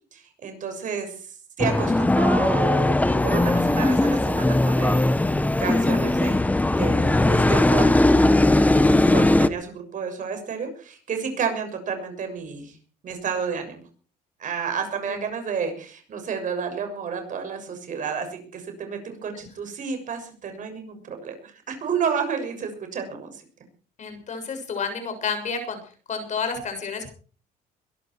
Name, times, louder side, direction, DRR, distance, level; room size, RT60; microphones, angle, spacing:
voice 1, 0.1-1.3 1.6-2.9 3.2-6.5 6.8-8.0 9.1-12.8 13.0-13.8 14.4-23.4, right 6 dB, 50° right, 6 dB, 6.6 m, -31 dB
sound 1, 1.6-9.5, left 2 dB, 10° left, 1.1 m, -19 dB
voice 2, 24.0-25.8 26.1-27.1, left 5 dB, 45° left, 7 dB, 6.7 m, -30 dB
22.5 x 12.0 x 4.7 m, 0.40 s
cardioid pair, 110°, 17 cm